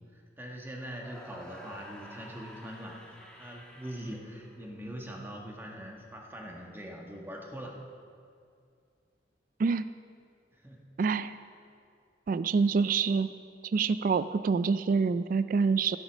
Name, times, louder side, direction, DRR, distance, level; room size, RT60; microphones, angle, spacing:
voice 1, 0.4-3.0 3.4-7.8 10.5-10.8, equal, 10° right, 0 dB, 1.4 m, -42 dB
sound 1, 0.9-5.1, equal, 5° left, 1.2 m, -50 dB
voice 2, 11.0-11.4 12.3-13.3 13.6-16.0, right 5 dB, 50° right, 13 dB, 0.3 m, -26 dB
13.0 x 8.0 x 6.2 m, 2.4 s
head